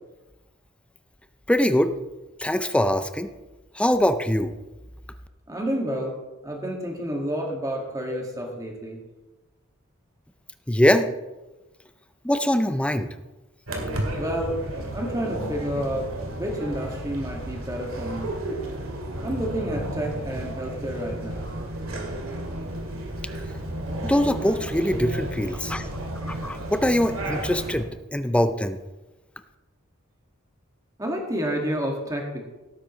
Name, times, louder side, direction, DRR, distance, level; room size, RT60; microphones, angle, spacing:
voice 1, 1.5-1.9 2.4-3.3 3.8-4.5 10.7-11.1 12.2-13.1 24.0-25.9 26.3-28.8, left 1 dB, 5° left, 10 dB, 0.5 m, -22 dB
voice 2, 5.5-6.2 6.4-9.0 14.2-14.6 14.9-18.3 19.2-21.5 31.0-32.4, equal, 15° right, 1 dB, 2.0 m, -30 dB
sound 1, 13.7-27.8, right 1 dB, 85° right, 2.1 m, -32 dB
17.0 x 8.8 x 3.2 m, 1.1 s
head